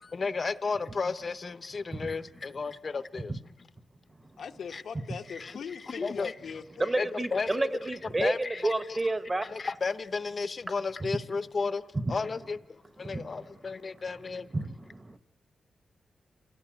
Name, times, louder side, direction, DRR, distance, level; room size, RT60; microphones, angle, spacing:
voice 1, 0.0-3.3 4.7-4.8 5.3-6.3 7.0-7.7 8.2-9.0 9.4-11.8 12.1-14.5, left 4 dB, 40° left, 0.7 m, -33 dB
voice 2, 4.4-7.0, left 6 dB, 80° left, 1.0 m, -41 dB
voice 3, 6.8-9.5 11.0-11.1 11.9-12.2 13.0-13.4 14.5-15.2, right 2 dB, 25° right, 1.0 m, -30 dB
28.5 x 16.5 x 9.0 m
wide cardioid pair, 115°, 0 cm